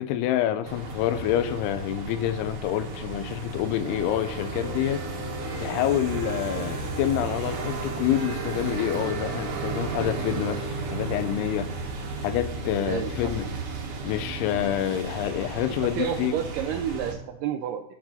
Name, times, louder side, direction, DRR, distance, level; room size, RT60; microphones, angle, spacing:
voice 1, 0.0-5.1 5.6-11.7 12.2-13.5 14.0-16.4, left 11 dB, 90° left, 2.7 m, -27 dB
sound 1, 0.7-17.1, right 3 dB, 55° right, 1.7 m, -33 dB
voice 2, 12.8-13.3 15.8-17.8, right 9 dB, 90° right, 1.9 m, -30 dB
11.5 x 6.1 x 4.1 m
omnidirectional pair, 4.5 m